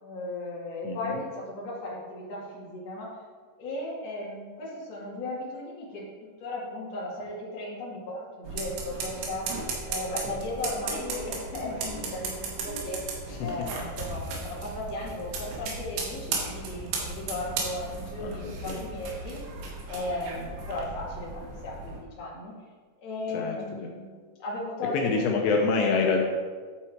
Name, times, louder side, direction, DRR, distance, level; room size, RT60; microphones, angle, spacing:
voice 1, 0.0-3.1 3.6-6.0 6.4-9.5 9.9-13.1 13.4-19.4 19.9-22.5 23.0-25.4 25.7-25.8, left 2 dB, 45° left, -6 dB, 3.0 m, -36 dB
voice 2, 0.8-1.2 13.3-13.5 18.2-18.8 23.3-23.9 24.9-26.2, left 4 dB, 80° left, 0 dB, 3.0 m, -27 dB
sound 1, 8.4-22.0, right 3 dB, 90° right, 3.7 m, -36 dB
sound 2, 11.1-19.3, right 1 dB, 60° right, 3.0 m, -47 dB
11.5 x 4.6 x 4.5 m, 1.5 s
omnidirectional pair, 4.9 m